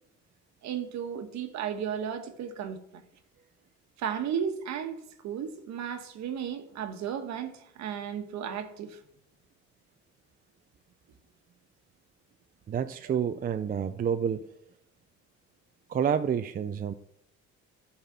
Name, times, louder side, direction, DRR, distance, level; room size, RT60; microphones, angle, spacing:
voice 1, 0.6-3.0 4.0-9.0, right 8 dB, 65° right, 1.3 m, -34 dB
voice 2, 12.7-14.5 15.9-16.9, right 8 dB, 30° right, 0.4 m, -29 dB
12.0 x 4.1 x 5.6 m
cardioid pair, 110°, 30 cm